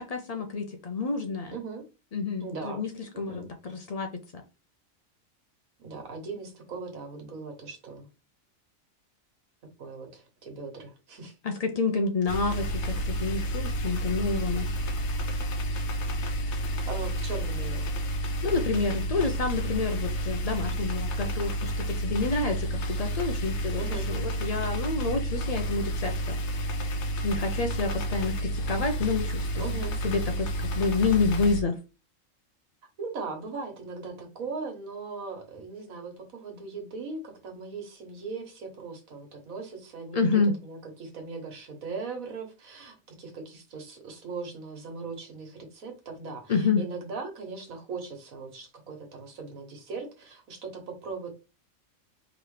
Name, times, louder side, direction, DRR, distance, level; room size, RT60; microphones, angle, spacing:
voice 1, 0.0-1.6 2.1-2.9 3.2-4.4 11.4-14.7 18.4-23.8 24.1-26.4 27.2-29.6 30.0-31.8 40.1-40.5 46.5-46.8, left 4 dB, 80° left, 0.3 m, -28 dB
voice 2, 1.5-1.8 2.4-2.8 3.1-3.5 5.8-8.1 9.8-11.3 16.9-17.8 23.8-24.1 27.4-27.5 29.6-29.9 33.0-51.3, right 4 dB, 85° right, 1.7 m, -39 dB
sound 1, 12.3-31.6, equal, 65° left, 1.0 m, -30 dB
4.7 x 3.1 x 3.2 m
omnidirectional pair, 1.4 m